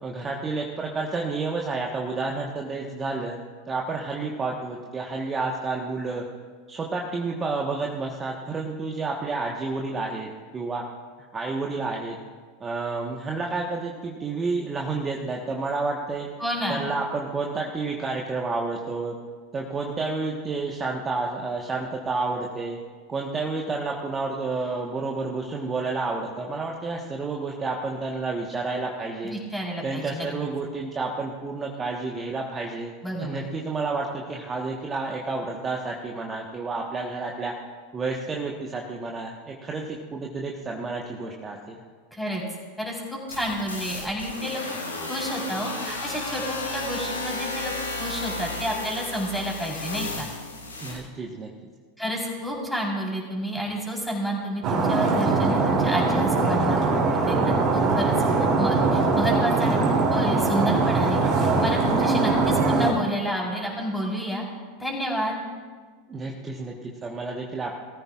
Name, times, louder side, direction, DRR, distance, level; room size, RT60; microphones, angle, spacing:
voice 1, 0.0-3.4 3.7-6.2 6.7-10.8 11.3-12.2 12.6-16.3 16.7-19.2 19.5-22.8 23.1-29.4 29.8-32.9 33.2-37.5 37.9-41.8 50.8-51.7 66.1-67.8, right 3 dB, 20° right, -1 dB, 1.3 m, -30 dB
voice 2, 16.4-16.9 29.3-30.3 33.0-33.4 42.1-42.4 42.8-43.0 43.3-44.6 45.1-47.7 48.0-50.3 52.0-59.8 60.1-64.4 64.8-65.4, equal, ahead, -2 dB, 4.1 m, -30 dB
sound 1, 43.3-51.0, left 2 dB, 90° left, 1.9 m, -33 dB
Stream, 54.6-62.9, right 3 dB, 40° right, 3.0 m, -22 dB
20.0 x 14.5 x 2.5 m, 1.5 s
figure-of-eight pair, 90°, 0 cm